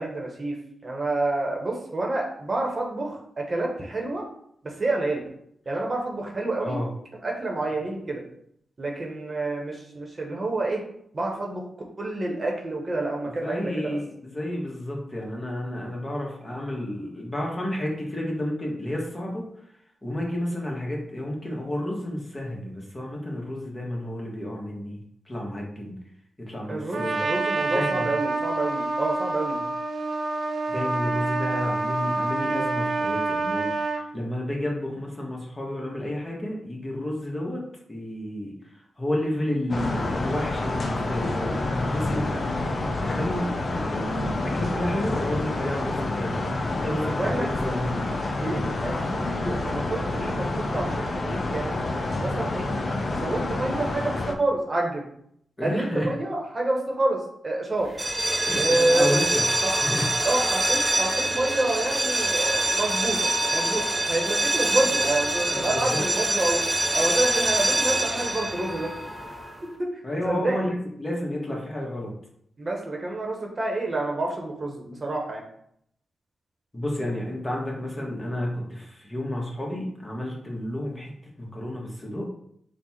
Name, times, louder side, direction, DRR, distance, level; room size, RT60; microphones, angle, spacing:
voice 1, 0.0-4.2 4.6-5.2 5.7-6.8 7.2-8.2 8.8-10.8 11.1-11.6 12.0-14.0 26.7-29.6 47.0-47.5 48.4-51.8 52.2-52.7 53.1-55.1 55.6-57.9 58.6-59.2 59.6-59.7 60.2-66.6 66.9-68.9 70.2-70.7 72.6-75.4, right 2 dB, 45° right, -1 dB, 1.0 m, -28 dB
voice 2, 13.2-19.5 20.0-25.0 25.3-26.0 26.4-27.2 27.6-28.1 30.7-37.6 37.9-38.6 39.0-46.4 46.7-47.9 55.6-56.1 58.4-59.4 59.8-60.1 65.5-66.0 70.0-72.1 76.7-81.1 81.4-82.3, left 1 dB, 30° left, -2 dB, 1.3 m, -31 dB
Trumpet, 26.9-34.0, right 3 dB, 60° right, 0.5 m, -27 dB
sound 1, 39.7-54.3, left 2 dB, 55° left, 0.5 m, -28 dB
sound 2, 57.9-69.6, right 1 dB, 20° right, 0.6 m, -25 dB
3.8 x 2.4 x 4.3 m, 0.70 s
cardioid pair, 50°, 0 cm